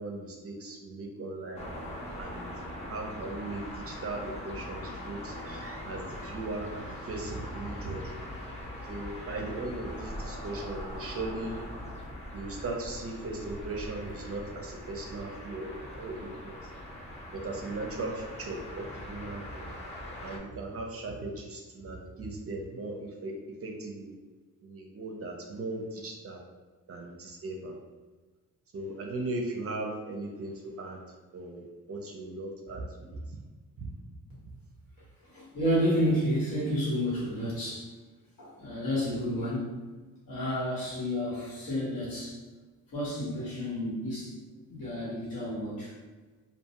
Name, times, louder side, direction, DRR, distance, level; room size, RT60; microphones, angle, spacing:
voice 1, 0.0-1.6 2.2-2.4 2.9-8.1 8.9-11.8 12.3-16.6 17.3-19.7 20.2-23.4 23.6-24.1 24.6-26.4 26.9-27.8 28.7-31.0 31.3-33.4 33.8-33.9, right 2 dB, 45° right, 1 dB, 0.5 m, -38 dB
sound 1, 1.6-20.4, left 1 dB, 20° left, 0.7 m, -41 dB
voice 2, 35.2-37.9 38.4-39.8 40.3-42.4 42.9-45.9, equal, 80° left, -8 dB, 1.5 m, -31 dB
2.5 x 2.2 x 2.8 m, 1.3 s
cardioid pair, 75°, 34 cm